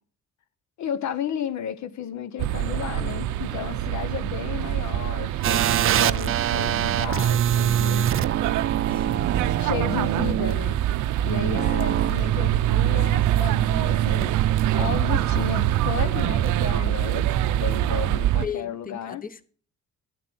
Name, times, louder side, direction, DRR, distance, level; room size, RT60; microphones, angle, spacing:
voice 1, 0.8-8.2 9.6-10.8 11.2-14.3 14.7-17.3 17.6-19.2, left 8 dB, 65° left, 0.9 m, -33 dB
sound 1, 2.4-18.5, right 13 dB, 85° right, 0.6 m, -26 dB
sound 2, 5.4-18.4, right 11 dB, 45° right, 0.5 m, -26 dB
voice 2, 6.0-6.5 8.9-9.6 11.5-11.9 18.4-19.5, left 7 dB, 30° left, 1.0 m, -37 dB
12.0 x 9.3 x 6.1 m
cardioid pair, 90°, 30 cm